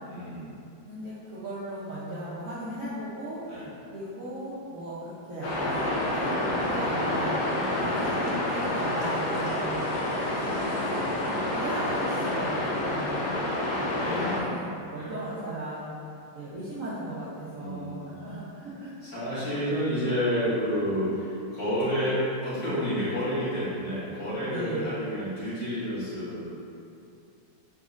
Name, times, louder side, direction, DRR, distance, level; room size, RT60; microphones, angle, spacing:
voice 1, 0.1-0.5 3.4-3.7 7.5-8.0 13.1-14.3 15.0-15.1 17.5-18.2 19.0-26.5, equal, 40° left, -13 dB, 1.7 m, -30 dB
voice 2, 0.8-3.6 3.9-7.4 7.7-9.9 10.5-13.3 14.0-15.9 16.3-18.9 19.3-19.7 24.5-24.9, right 1 dB, 70° right, -11 dB, 0.8 m, -37 dB
sound 1, 5.4-14.4, left 1 dB, 65° left, 1.2 m, -28 dB
4.0 x 3.9 x 2.4 m, 2.5 s
omnidirectional pair, 2.2 m